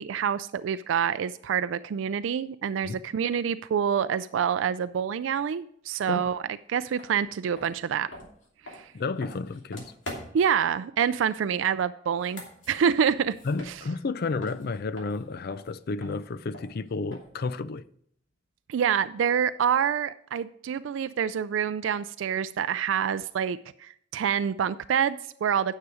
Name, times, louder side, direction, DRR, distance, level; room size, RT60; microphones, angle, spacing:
voice 1, 0.0-6.4 6.7-8.1 8.7-8.9 10.3-13.3 13.7-13.8 18.7-25.8, right 8 dB, 80° right, 0.3 m, -27 dB
sound 1, 7.0-7.1 7.5-10.5 12.1-14.1 14.4-17.5, left 1 dB, 75° left, 2.7 m, -44 dB
voice 2, 8.9-9.9 13.4-17.9, left 3 dB, 55° left, 0.4 m, -31 dB
9.6 x 6.6 x 4.9 m
head